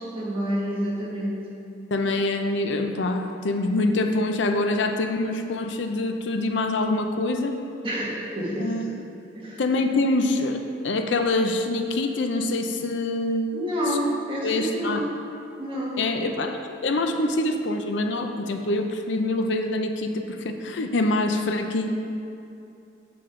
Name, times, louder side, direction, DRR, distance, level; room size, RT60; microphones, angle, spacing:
voice 1, 0.0-1.4 7.8-8.9 9.3-9.6 13.5-15.3 15.6-16.0, equal, 30° right, -6 dB, 1.9 m, -28 dB
voice 2, 1.9-7.6 8.6-8.8 9.6-13.5 14.4-15.0 16.0-21.9, left 2 dB, 75° left, 5 dB, 0.6 m, -25 dB
8.3 x 7.7 x 3.8 m, 2.7 s
head